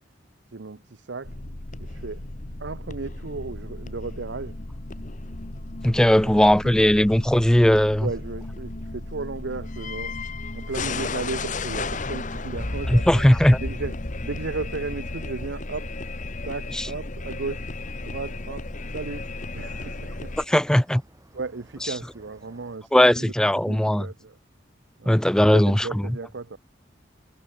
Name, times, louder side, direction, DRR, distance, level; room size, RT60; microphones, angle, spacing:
voice 1, 0.5-1.4 1.8-2.3 2.6-4.6 6.2-6.7 8.0-10.2 10.5-13.2 13.6-13.9 14.2-15.9 16.4-17.7 18.0-20.4 21.3-23.3 23.7-24.4 25.0-25.2 25.5-26.6, right 3 dB, 75° right, 0.8 m, -35 dB
sound 1, 1.2-20.5, left 2 dB, 45° left, 1.4 m, -34 dB
voice 2, 5.8-8.1 12.9-13.6 16.7-16.9 20.5-21.0 22.9-24.1 25.1-25.9, equal, 5° left, 0.4 m, -18 dB
sound 2, 17.7-22.8, right 1 dB, 20° right, 2.2 m, -55 dB
head